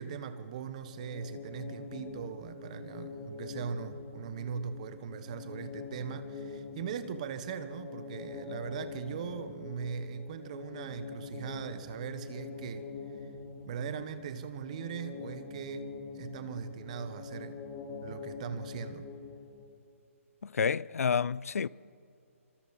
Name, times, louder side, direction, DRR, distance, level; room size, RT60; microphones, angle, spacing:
voice 1, 0.0-12.9 13.7-15.9 16.1-17.6 18.0-19.0, right 7 dB, 30° right, 1.1 m, -40 dB
sound 1, 0.8-19.6, left 4 dB, 25° left, 3.2 m, -44 dB
voice 2, 20.4-21.7, left 6 dB, 90° left, 0.5 m, -29 dB
27.5 x 25.5 x 4.2 m
hypercardioid pair, 170°, 8 cm